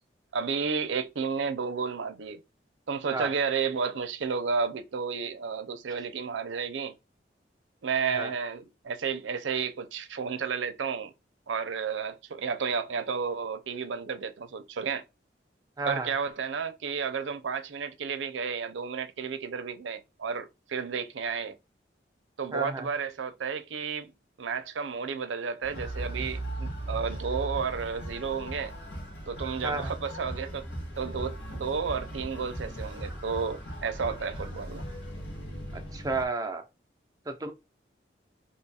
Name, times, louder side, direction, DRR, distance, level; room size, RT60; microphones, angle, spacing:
voice 1, 0.3-2.4 2.9-6.9 7.8-11.1 11.5-15.0 15.8-21.6 22.4-24.1 24.4-28.7 29.3-30.7 31.0-34.8, right 5 dB, 90° right, 0.5 m, -32 dB
voice 2, 15.8-16.1 22.5-22.9 29.6-29.9 35.7-36.6 37.3-37.5, right 3 dB, 20° right, 0.5 m, -32 dB
sound 1, 25.6-36.3, right 1 dB, 75° left, 1.3 m, -38 dB
2.9 x 2.3 x 4.1 m
head